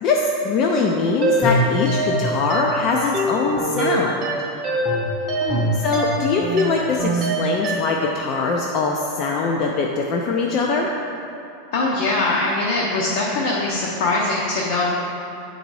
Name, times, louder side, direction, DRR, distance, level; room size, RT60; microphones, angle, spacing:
voice 1, 0.0-4.2 5.7-10.9, left 4 dB, 30° left, 0 dB, 0.4 m, -22 dB
sound 1, 1.2-8.1, right 1 dB, 20° right, 0.7 m, -23 dB
voice 2, 5.4-5.7 11.7-14.9, left 2 dB, 50° left, -3 dB, 0.8 m, -22 dB
8.3 x 3.9 x 4.7 m, 3.0 s
supercardioid pair, 180°, 0 cm